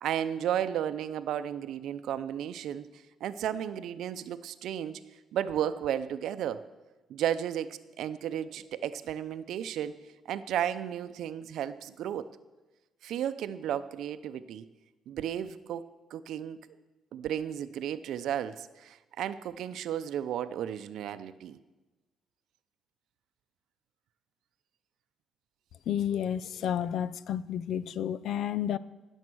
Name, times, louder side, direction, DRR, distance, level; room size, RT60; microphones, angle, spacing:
voice 1, 0.0-2.9 3.2-5.0 5.3-6.7 7.1-9.9 10.3-12.3 13.0-14.7 15.1-16.6 17.1-21.6, right 10 dB, 80° right, 0.6 m, -33 dB
voice 2, 25.9-28.8, left 9 dB, 75° left, 0.5 m, -31 dB
19.0 x 7.3 x 6.2 m
cardioid pair, 90°, 0 cm